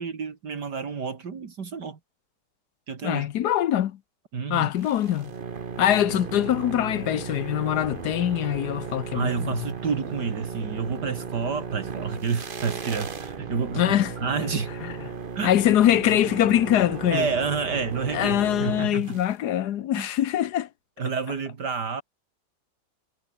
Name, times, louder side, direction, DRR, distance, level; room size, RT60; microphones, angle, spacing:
voice 1, 0.0-2.0 2.9-3.3 4.3-4.7 9.1-14.0 14.2-14.7 15.4-15.5 17.1-19.2 20.0-20.1 21.0-22.0, right 5 dB, 65° right, 2.7 m, -29 dB
voice 2, 3.0-4.0 4.5-5.3 5.8-9.5 13.8-14.1 15.4-17.3 18.1-20.7, left 11 dB, 65° left, 1.3 m, -23 dB
sound 1, 4.8-19.3, right 5 dB, 35° right, 1.1 m, -36 dB
omnidirectional pair, 1.9 m